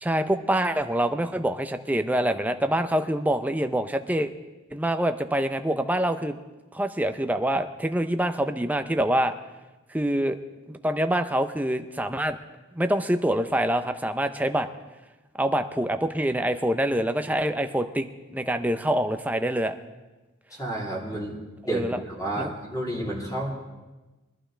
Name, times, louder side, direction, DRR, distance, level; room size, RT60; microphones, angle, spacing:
voice 1, 0.0-4.3 4.7-6.4 6.7-9.3 9.9-10.4 10.7-12.4 12.8-14.7 15.4-18.1 18.3-19.7 21.7-22.0 22.4-22.5, right 1 dB, 10° right, 8 dB, 0.6 m, -25 dB
voice 2, 20.5-21.4 21.6-23.5, right 1 dB, 15° left, -4 dB, 3.3 m, -31 dB
23.0 x 11.5 x 3.4 m, 1.1 s
head